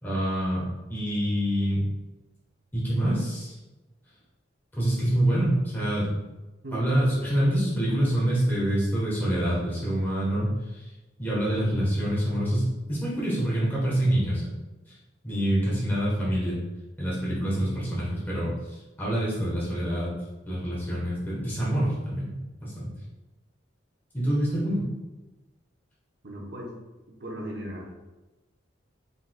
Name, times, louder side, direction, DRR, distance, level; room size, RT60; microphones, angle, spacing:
voice 1, 0.0-1.8 2.7-3.5 4.7-6.1 6.7-10.8 11.2-14.5 15.2-16.6 17.0-20.1 20.5-22.3 22.6-22.9 24.1-24.8, right 1 dB, 10° left, -8 dB, 1.2 m, -26 dB
voice 2, 26.2-26.7 27.1-27.9, right 1 dB, 60° right, -1 dB, 0.9 m, -37 dB
4.5 x 4.0 x 2.3 m, 1.1 s
head